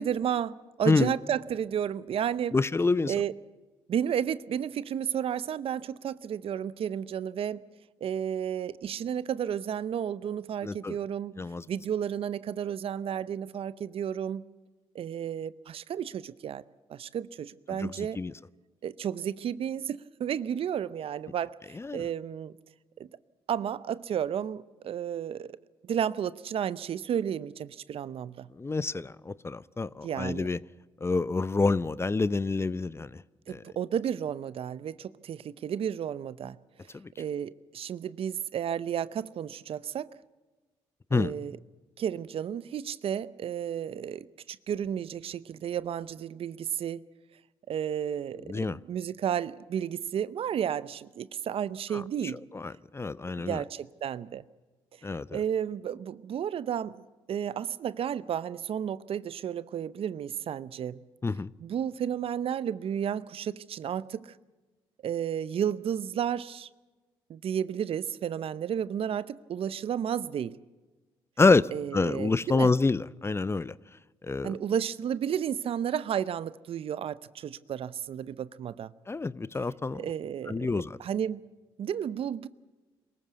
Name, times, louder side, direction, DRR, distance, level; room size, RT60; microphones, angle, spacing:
voice 1, 0.0-2.6 3.1-3.3 3.9-7.6 8.0-11.3 11.7-14.4 14.9-16.6 16.9-18.2 18.8-22.5 23.0-23.1 23.5-25.6 25.8-28.5 30.0-30.5 33.5-36.6 37.2-40.1 41.1-41.6 42.0-47.0 47.7-52.4 53.4-54.4 55.3-57.0 57.3-61.0 61.6-64.3 65.0-66.7 67.3-70.6 71.7-72.7 74.4-78.9 79.9-81.4 81.8-82.5, right 9 dB, 60° right, 0.7 m, -32 dB
voice 2, 2.5-3.1 10.6-11.0 11.4-11.6 17.8-18.3 21.7-22.0 28.6-30.6 31.0-33.2 33.5-33.6 36.9-37.1 41.1-41.3 48.5-48.8 51.9-52.0 52.3-53.6 55.0-55.4 61.2-61.5 71.4-73.7 74.2-74.6 79.1-80.0 80.5-81.0, left 3 dB, 25° left, 0.6 m, -27 dB
23.0 x 14.5 x 8.1 m
supercardioid pair, 55°, 11 cm